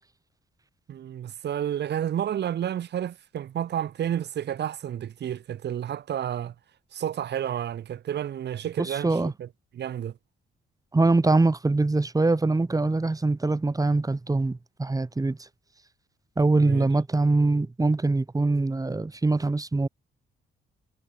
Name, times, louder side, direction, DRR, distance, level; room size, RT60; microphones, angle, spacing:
voice 1, 0.9-6.5 6.9-9.5 9.7-10.1 16.5-16.9, right 10 dB, 60° right, 1.3 m, -31 dB
voice 2, 8.8-9.3 10.9-15.4 16.4-19.9, right 3 dB, 15° right, 2.5 m, -23 dB
cardioid pair, 90°, 20 cm